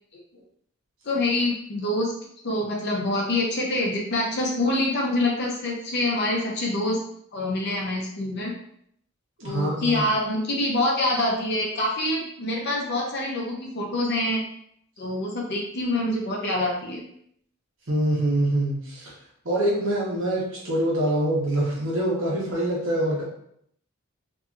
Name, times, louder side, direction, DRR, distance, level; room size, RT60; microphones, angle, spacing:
voice 1, 1.0-2.1 2.4-7.0 7.3-8.5 9.4-14.4 15.0-17.0, left 1 dB, 50° left, -1 dB, 0.6 m, -25 dB
voice 2, 9.4-10.0 17.9-19.1 19.4-23.2, right 1 dB, 60° right, -4 dB, 1.0 m, -25 dB
2.7 x 2.7 x 2.4 m, 0.70 s
head